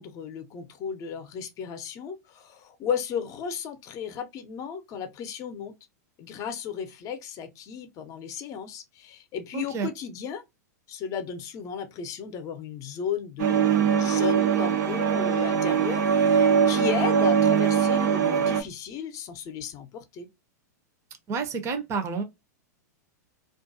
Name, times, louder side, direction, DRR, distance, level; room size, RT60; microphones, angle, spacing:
voice 1, 0.0-5.8 6.2-10.4 10.9-20.3, left 7 dB, 35° left, 0.6 m, -34 dB
voice 2, 9.5-9.9 21.3-22.2, right 5 dB, 30° right, 0.6 m, -29 dB
sound 1, 13.4-18.6, right 7 dB, 65° right, 0.7 m, -22 dB
2.4 x 2.2 x 2.6 m
hypercardioid pair, 110°, 9 cm